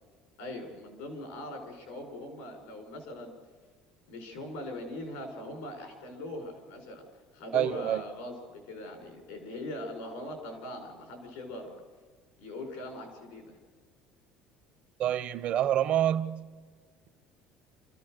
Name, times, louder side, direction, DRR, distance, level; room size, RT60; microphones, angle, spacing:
voice 1, 0.4-3.3 4.1-7.1 7.3-11.8 12.4-13.6, left 1 dB, 90° left, 5.8 m, -41 dB
voice 2, 7.5-8.0 15.0-16.4, right 11 dB, 45° right, 0.7 m, -27 dB
29.0 x 14.5 x 6.6 m
cardioid pair, 160°, 3 cm